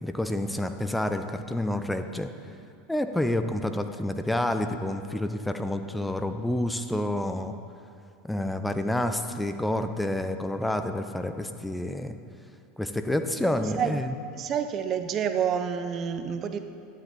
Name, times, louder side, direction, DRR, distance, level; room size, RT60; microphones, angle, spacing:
voice 1, 0.0-2.3 2.9-7.5 8.2-12.2 12.8-14.1, left 1 dB, 5° left, 8 dB, 0.6 m, -29 dB
voice 2, 14.4-16.6, right 8 dB, 40° right, 9 dB, 0.5 m, -28 dB
10.5 x 7.3 x 4.0 m, 2.5 s
figure-of-eight pair, 80°, 0 cm